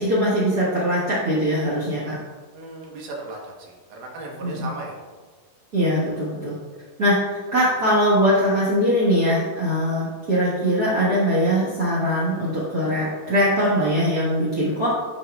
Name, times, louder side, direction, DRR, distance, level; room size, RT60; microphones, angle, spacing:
voice 1, 0.0-2.2 4.4-4.7 5.7-6.5 7.0-14.9, equal, 55° right, -8 dB, 1.0 m, -21 dB
voice 2, 2.5-5.0, right 2 dB, 75° right, -1 dB, 2.6 m, -36 dB
11.5 x 4.6 x 2.3 m, 1.4 s
omnidirectional pair, 3.8 m